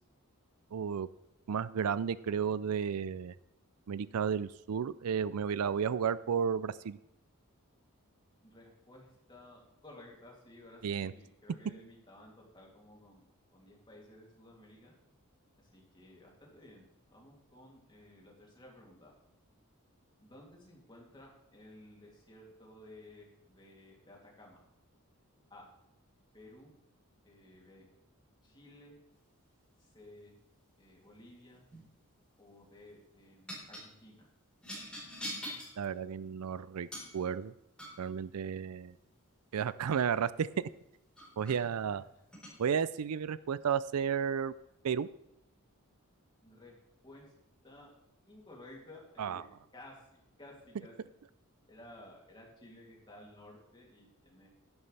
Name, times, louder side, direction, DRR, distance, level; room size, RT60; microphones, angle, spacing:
voice 1, 0.7-1.1 1.5-3.3 3.9-7.0 10.8-11.1 35.8-36.9 37.1-37.5 38.0-38.9 39.5-40.7 41.4-42.0 42.6-44.5 44.8-45.1 49.2-49.4, right 7 dB, 85° right, 17 dB, 0.4 m, -32 dB
voice 2, 8.4-14.9 15.7-19.1 20.2-24.6 25.5-25.6 26.3-26.7 27.2-27.9 28.4-29.0 29.8-30.4 30.8-31.6 32.4-34.3 41.5-41.7 46.4-46.7 47.0-47.3 47.6-47.9 48.3-50.9 51.7-54.5, left 1 dB, 20° left, -2 dB, 2.8 m, -55 dB
sound 1, 31.5-31.9 33.5-33.9 34.6-35.8 36.9-37.2 37.8-38.1 40.5-40.6 41.2-41.6 42.3-42.6, equal, 5° left, 4.1 m, -43 dB
11.5 x 11.0 x 3.3 m, 0.84 s
head